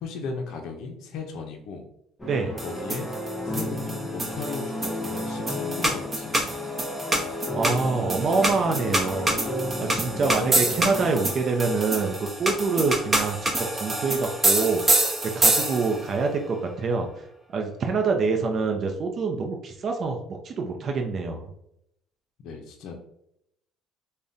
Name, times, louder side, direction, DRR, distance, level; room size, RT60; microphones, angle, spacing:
voice 1, 0.0-1.9 2.6-3.1 3.4-6.6 9.7-10.7 22.4-23.0, left 4 dB, 70° left, 3 dB, 0.5 m, -36 dB
sound 1, 2.2-11.1, left 1 dB, 15° left, 0.7 m, -33 dB
voice 2, 2.3-2.6 7.5-9.4 9.8-15.0 15.3-17.1 17.5-21.5, right 4 dB, 50° right, 3 dB, 0.5 m, -26 dB
sound 2, 2.6-16.1, right 1 dB, 25° right, 0.8 m, -26 dB
3.5 x 2.1 x 2.6 m, 0.76 s
cardioid pair, 100°, 0 cm